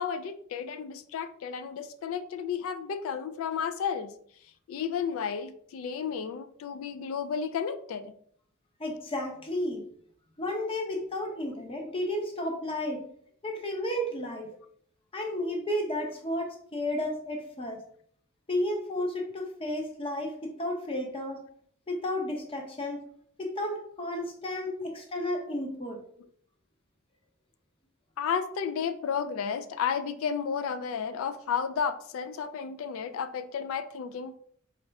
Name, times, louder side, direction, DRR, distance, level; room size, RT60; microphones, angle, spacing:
voice 1, 0.0-4.1 4.7-8.1 24.8-24.9 28.2-34.3, left 7 dB, 70° left, 11 dB, 0.3 m, -32 dB
voice 2, 8.8-9.8 10.4-13.0 13.4-14.5 15.1-17.8 18.5-21.4 21.9-23.0 23.4-26.0, left 1 dB, 25° left, 2 dB, 0.7 m, -32 dB
4.1 x 2.4 x 3.3 m, 0.62 s
head